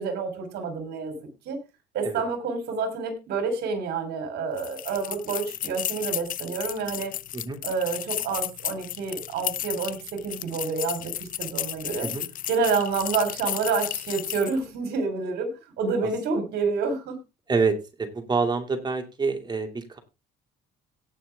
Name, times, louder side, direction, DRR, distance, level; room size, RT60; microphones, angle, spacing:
voice 1, 0.0-1.6 1.9-7.1 7.6-12.1 12.5-17.2, right 4 dB, 75° right, 7 dB, 4.1 m, -28 dB
sound 1, 4.6-14.7, left 12 dB, 55° left, 0.5 m, -33 dB
voice 2, 17.5-20.0, right 4 dB, 25° right, 6 dB, 2.6 m, -27 dB
17.5 x 6.0 x 3.6 m, 0.27 s
cardioid pair, 110°, 17 cm